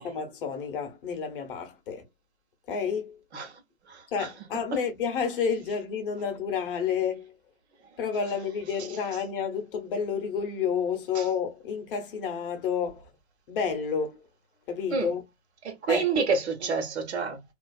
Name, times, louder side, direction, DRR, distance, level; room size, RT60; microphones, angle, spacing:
voice 1, 0.0-2.1 2.7-3.2 4.1-7.3 8.0-13.1 13.5-14.2 14.7-15.2 15.9-16.0, left 6 dB, 45° left, 0.7 m, -30 dB
voice 2, 15.6-17.4, right 5 dB, 55° right, 0.9 m, -28 dB
2.5 x 2.2 x 2.3 m
hypercardioid pair, 125°, 39 cm